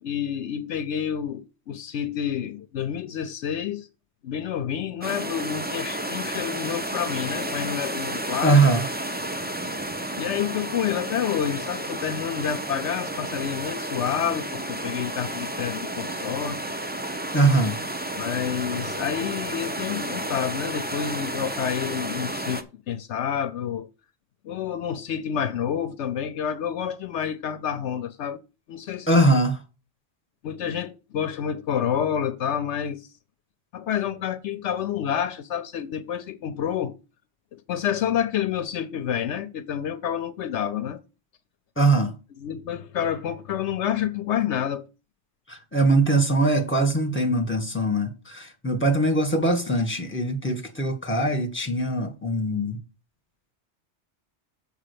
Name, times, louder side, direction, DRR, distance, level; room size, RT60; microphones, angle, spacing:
voice 1, 0.0-3.9 4.2-8.6 10.2-16.7 18.2-23.9 24.4-28.4 28.7-29.2 30.4-33.1 33.7-36.9 37.5-41.0 42.4-44.9, left 9 dB, 75° left, 1.0 m, -29 dB
sound 1, 5.0-22.6, right 1 dB, 10° right, 0.7 m, -32 dB
voice 2, 8.4-8.8 17.3-17.8 29.1-29.5 41.8-42.1 45.5-52.8, right 2 dB, 10° left, 1.8 m, -22 dB
7.5 x 5.3 x 6.9 m
omnidirectional pair, 1.2 m